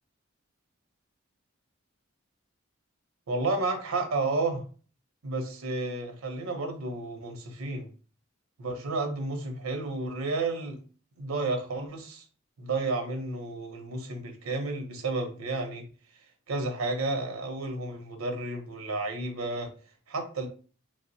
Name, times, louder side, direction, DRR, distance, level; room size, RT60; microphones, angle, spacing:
voice 1, 3.3-4.7 5.2-7.9 8.6-10.8 11.2-12.2 12.6-15.9 16.5-19.7 20.1-20.5, right 2 dB, 90° right, 5 dB, 0.6 m, -31 dB
3.2 x 2.0 x 2.6 m, 0.38 s
head